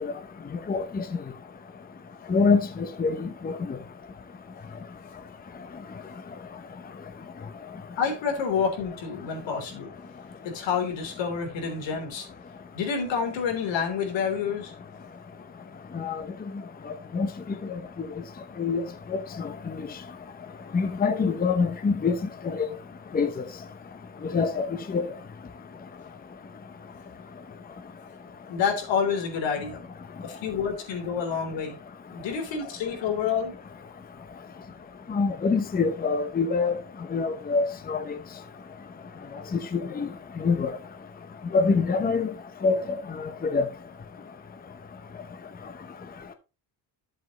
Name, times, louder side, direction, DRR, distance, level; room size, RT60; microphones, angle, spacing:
voice 1, 0.7-1.0 2.3-3.8 15.9-16.2 17.1-17.3 18.6-18.8 19.1-19.5 20.7-22.2 22.5-22.7 23.1-23.4 24.3-24.7 24.9-25.1 35.1-36.7 37.1-38.0 39.7-40.1 40.4-40.7 41.5-42.3 42.6-43.0 43.5-43.6, left 4 dB, 20° left, 0.8 m, -25 dB
voice 2, 8.0-9.9 10.4-12.3 12.7-14.7 28.5-29.8 30.2-31.8 32.1-33.5 39.8-40.0, left 6 dB, 85° left, 3.4 m, -28 dB
10.5 x 7.7 x 3.0 m
cardioid pair, 140°, 44 cm